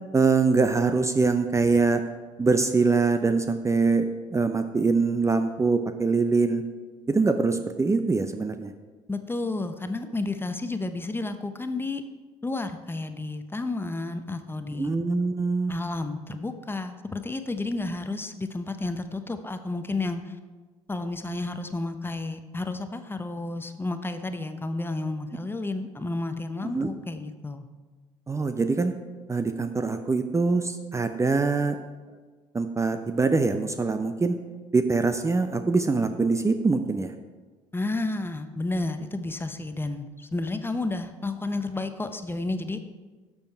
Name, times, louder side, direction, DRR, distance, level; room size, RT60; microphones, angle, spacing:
voice 1, 0.1-2.1 2.4-4.1 4.3-6.6 7.1-8.7 14.8-15.8 26.6-26.9 28.3-28.9 29.3-31.8 32.5-34.4 34.7-37.1, right 4 dB, 20° right, 9 dB, 0.7 m, -23 dB
voice 2, 9.1-12.0 12.4-14.9 15.7-20.4 20.9-27.6 37.7-42.8, left 2 dB, 15° left, 8 dB, 0.9 m, -31 dB
12.0 x 7.1 x 4.6 m, 1.3 s
figure-of-eight pair, 60°, 16 cm